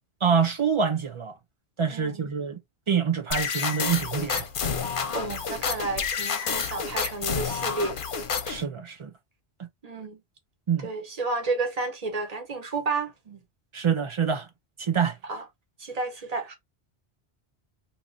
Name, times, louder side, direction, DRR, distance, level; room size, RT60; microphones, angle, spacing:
voice 1, 0.2-1.4 1.8-2.6 2.9-4.5 8.5-9.1 10.7-10.9 13.7-14.5 14.8-15.2, right 6 dB, 55° right, 0.3 m, -26 dB
voice 2, 1.9-2.3 5.1-8.0 9.8-10.2 10.8-13.4 15.2-15.4 15.8-16.5, right 3 dB, 35° right, 1.0 m, -31 dB
sound 1, 3.3-8.6, left 6 dB, 55° left, 0.8 m, -29 dB
2.8 x 2.5 x 3.9 m
omnidirectional pair, 1.1 m